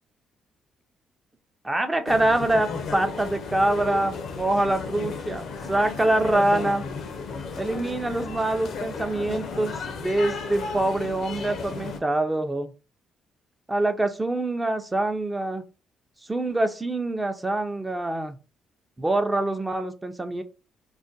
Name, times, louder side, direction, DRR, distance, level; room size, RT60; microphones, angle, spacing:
voice 1, 1.6-6.8 7.5-12.7 13.7-15.6 16.3-18.4 19.0-20.4, right 2 dB, 15° right, 7 dB, 0.5 m, -25 dB
sound 1, 2.1-12.0, left 4 dB, 65° left, 0.5 m, -34 dB
2.5 x 2.1 x 3.9 m, 0.31 s
cardioid pair, 90°, 0 cm